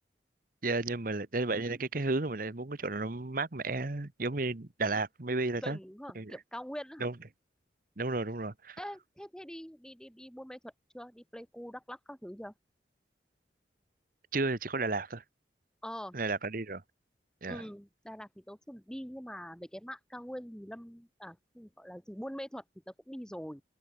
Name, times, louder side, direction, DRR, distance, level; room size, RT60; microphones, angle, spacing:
voice 1, 0.6-5.8 6.1-6.3 7.0-7.1 8.0-8.8 14.3-15.2 16.1-16.8 17.4-17.6, right 3 dB, 50° right, 1.1 m, -33 dB
voice 2, 5.6-7.1 8.8-12.5 15.8-16.1 17.5-23.6, equal, 5° left, 2.7 m, -44 dB
head